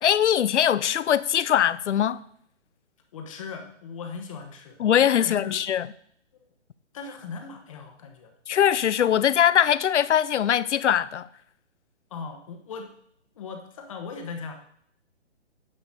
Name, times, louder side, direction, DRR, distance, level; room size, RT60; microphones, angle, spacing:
voice 1, 0.0-2.2 4.8-5.9 8.5-11.3, left 10 dB, 75° left, 0.6 m, -21 dB
voice 2, 3.1-4.8 5.2-5.6 6.4-6.5 6.9-8.3 12.1-12.9 13.4-14.5, left 5 dB, 30° left, 1.1 m, -38 dB
9.8 x 6.8 x 4.1 m
hypercardioid pair, 160°, 36 cm